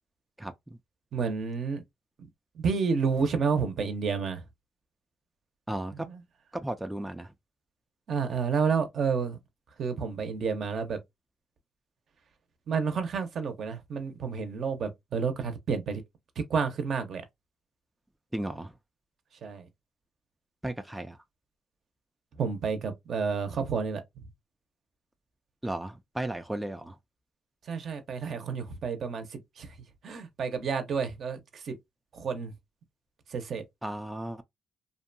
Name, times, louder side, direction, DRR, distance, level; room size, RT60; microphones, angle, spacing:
voice 1, 0.4-0.8 5.7-6.1 6.5-7.3 18.3-18.7 20.6-21.2 25.6-27.0 33.8-34.4, right 1 dB, 5° right, 0.3 m, -35 dB
voice 2, 1.1-1.8 2.6-4.4 6.1-6.2 8.1-9.4 9.8-11.0 12.7-16.0 16.5-17.2 19.4-19.7 22.4-24.0 27.7-29.7 30.0-31.8 32.1-32.5 33.3-33.6, right 5 dB, 60° right, 0.7 m, -30 dB
2.6 x 2.2 x 2.5 m
cardioid pair, 90°, 0 cm